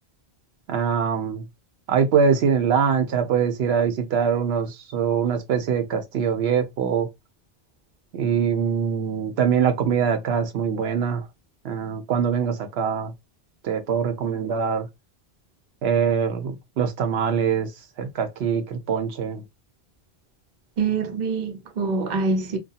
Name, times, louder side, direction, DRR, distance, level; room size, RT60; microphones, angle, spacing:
voice 1, 0.7-1.4 1.9-7.1 8.1-11.2 11.6-13.1 13.6-14.9 15.8-17.7 18.0-19.4, right 7 dB, 80° right, 0.8 m, -23 dB
voice 2, 20.8-22.6, right 4 dB, 50° right, 0.7 m, -25 dB
2.7 x 2.3 x 2.3 m
omnidirectional pair, 1.1 m